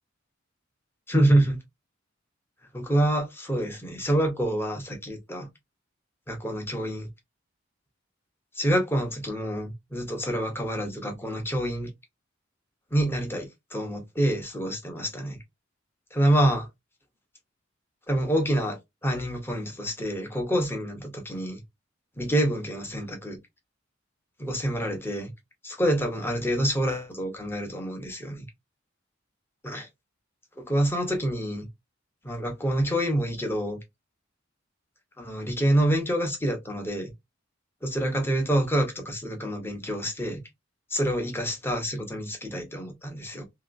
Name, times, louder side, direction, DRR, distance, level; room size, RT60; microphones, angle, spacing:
voice 1, 1.1-1.6 2.7-5.5 6.3-7.1 8.5-11.9 12.9-15.4 16.1-16.7 18.1-21.6 22.2-23.4 24.4-25.3 25.6-28.5 29.6-29.9 30.6-31.7 32.2-33.8 35.2-37.1 37.8-40.4 40.9-43.4, right 1 dB, 10° left, 0.8 m, -27 dB
2.9 x 2.8 x 2.5 m
head